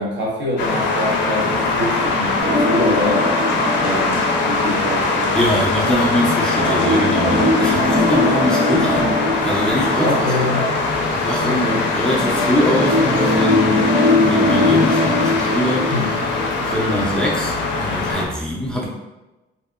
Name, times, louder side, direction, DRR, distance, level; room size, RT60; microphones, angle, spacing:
voice 1, 0.0-3.4 3.8-5.3 7.3-8.1 10.0-10.8 11.4-11.9 15.9-16.1 16.9-17.2, left 1 dB, 75° right, -4 dB, 0.8 m, -25 dB
sound 1, 0.6-18.3, left 3 dB, 85° left, 0.4 m, -21 dB
sound 2, 2.4-5.1 6.6-10.9 12.2-17.1 17.4-17.5 18.1-18.2, left 1 dB, 55° right, 1.2 m, -21 dB
voice 2, 5.3-9.1 9.4-10.5 11.1-13.9 14.2-15.9 16.6-17.5 17.8-18.9, left 1 dB, 5° left, -4 dB, 0.4 m, -23 dB
2.7 x 2.1 x 2.3 m, 1.0 s
cardioid pair, 115°, 18 cm